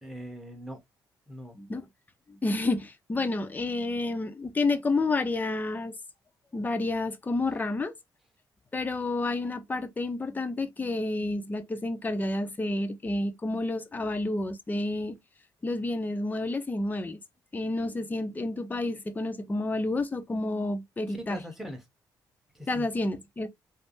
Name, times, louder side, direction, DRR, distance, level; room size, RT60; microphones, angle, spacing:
voice 1, 0.0-0.8 1.3-1.6 21.1-21.8 22.5-22.9, equal, 5° right, 1.1 m, -40 dB
voice 2, 1.5-1.9 2.3-5.9 6.5-7.9 8.7-15.2 15.6-17.2 17.5-21.4 22.7-23.5, left 2 dB, 20° left, 0.5 m, -30 dB
3.3 x 2.0 x 2.6 m
cardioid pair, 75°, 8 cm